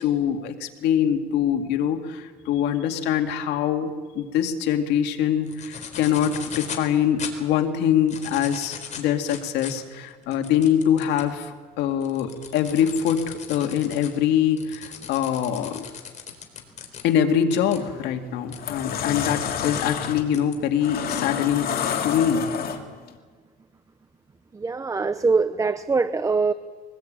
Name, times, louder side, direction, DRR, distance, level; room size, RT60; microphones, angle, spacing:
voice 1, 0.0-15.9 17.0-21.7 22.0-22.5, left 9 dB, 90° left, 4 dB, 2.3 m, -24 dB
sound 1, 5.5-6.9 7.2-7.3 7.9-11.3 11.8-17.0 17.5-17.8 18.5-18.6 18.9-19.0 19.4-19.9 20.3-21.2 21.7-22.0, left 7 dB, 45° left, 4.2 m, -38 dB
sound 2, 17.7-17.9 18.4-23.1, left 8 dB, 60° left, 2.7 m, -29 dB
voice 2, 24.5-26.5, right 4 dB, 20° right, 12 dB, 0.8 m, -23 dB
23.0 x 20.5 x 8.9 m, 1.5 s
cardioid pair, 110°, 17 cm